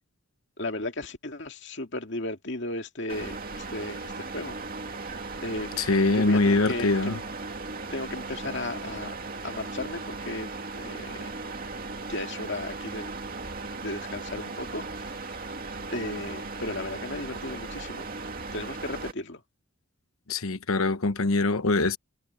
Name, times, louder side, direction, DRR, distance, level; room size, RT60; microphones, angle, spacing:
voice 1, 0.6-4.6 5.0-5.8 6.1-7.2 7.9-9.1 9.4-11.2 12.1-13.1 13.6-15.4 15.9-18.1 18.5-19.4, left 2 dB, 55° left, 2.4 m, -35 dB
sound 1, 3.1-19.1, right 3 dB, 40° right, 2.5 m, -37 dB
voice 2, 5.8-7.2 20.3-22.0, left 2 dB, 80° left, 1.1 m, -23 dB
head